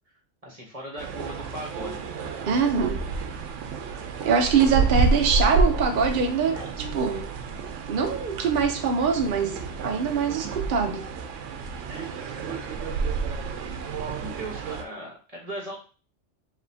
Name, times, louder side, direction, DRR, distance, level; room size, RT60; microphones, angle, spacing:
voice 1, 0.4-2.0 6.5-6.8 11.9-12.8 14.2-15.8, right 1 dB, 30° right, -2 dB, 1.3 m, -39 dB
sound 1, 1.0-14.8, right 4 dB, 90° right, 1.0 m, -29 dB
voice 2, 2.5-3.0 4.2-6.6 6.9-7.2 7.9-11.0, right 5 dB, 55° right, 4 dB, 0.7 m, -23 dB
5.2 x 3.0 x 2.7 m, 0.35 s
omnidirectional pair, 1.2 m